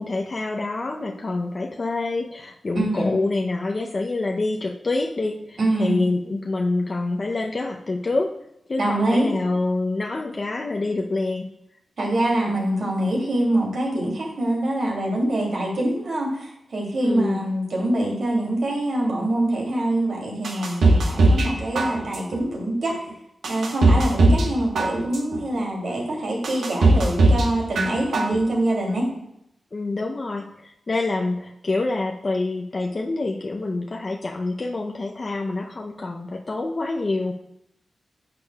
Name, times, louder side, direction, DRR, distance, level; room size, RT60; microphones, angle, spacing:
voice 1, 0.0-8.3 8.7-11.5 16.9-17.5 29.7-37.3, left 2 dB, 40° left, 1 dB, 0.6 m, -26 dB
voice 2, 2.7-3.1 5.6-6.0 8.8-9.3 12.0-22.9 23.5-29.0, right 1 dB, 75° right, -2 dB, 2.7 m, -24 dB
sound 1, 20.4-21.5 21.8-22.4 22.9-23.0 23.4-24.5 24.8-25.4 25.9-26.0 26.4-27.5 27.8-28.4 28.7-28.8, right 2 dB, 90° right, 1.2 m, -18 dB
10.5 x 6.9 x 2.3 m, 0.78 s
cardioid pair, 80°, 0 cm